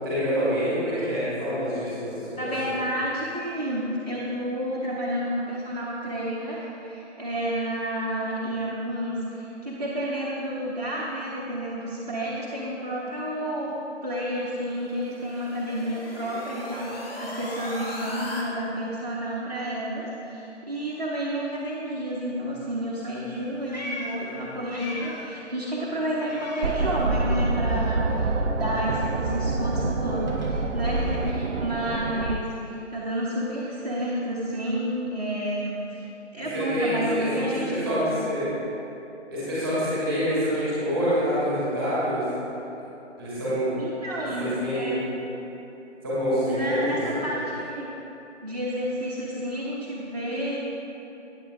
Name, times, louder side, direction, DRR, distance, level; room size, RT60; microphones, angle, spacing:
voice 1, 0.0-2.7 36.5-37.3 37.7-38.5 39.3-42.2 43.2-43.7 44.4-45.0 46.0-47.4, equal, ahead, -12 dB, 2.3 m, -26 dB
voice 2, 2.4-13.7 14.0-28.3 28.6-36.1 36.3-38.1 43.8-45.0 46.5-47.9 48.4-50.6, equal, 35° right, -8 dB, 0.9 m, -30 dB
sound 1, 14.5-18.4, left 1 dB, 50° left, 1.8 m, -38 dB
Meow, 23.2-25.4 25.7-27.4 27.7-31.9, left 1 dB, 35° left, 1.1 m, -42 dB
sound 2, 26.6-32.4, right 3 dB, 80° right, 0.6 m, -26 dB
13.5 x 9.0 x 2.6 m, 3.0 s
figure-of-eight pair, 165°, 37 cm